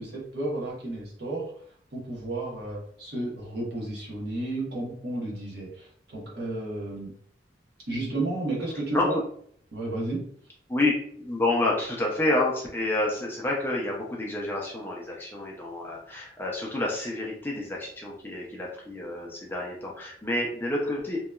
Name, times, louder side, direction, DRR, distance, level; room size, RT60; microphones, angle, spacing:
voice 1, 0.0-1.5 1.9-7.1 7.9-9.2 9.7-10.3, right 2 dB, 60° right, -4 dB, 0.9 m, -32 dB
voice 2, 10.7-21.2, left 2 dB, 10° left, -3 dB, 0.4 m, -29 dB
2.8 x 2.2 x 2.2 m, 0.63 s
head